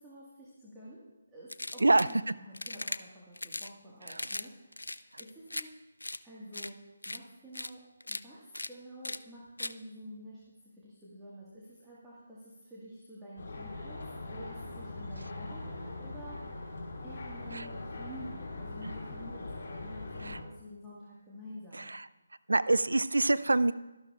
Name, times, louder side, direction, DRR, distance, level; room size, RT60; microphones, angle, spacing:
voice 1, 0.0-5.7 6.2-10.4 10.7-16.7 17.0-21.9, equal, 5° right, -10 dB, 1.6 m, -49 dB
sound 1, 1.5-2.1 2.5-3.0 3.4-3.7 4.1-4.5 4.7-5.6 6.0-6.2 6.5-6.7 7.0-7.2 7.5-7.7 8.0-8.2 8.5-8.7 9.0-9.2 9.6-9.7, left 2 dB, 80° left, 0.4 m, -38 dB
sound 2, 13.4-20.4, left 2 dB, 50° left, 2.5 m, -41 dB
voice 2, 22.5-23.7, right 2 dB, 75° right, 16 dB, 0.3 m, -25 dB
12.5 x 12.0 x 2.4 m, 1.0 s
figure-of-eight pair, 150°, 0 cm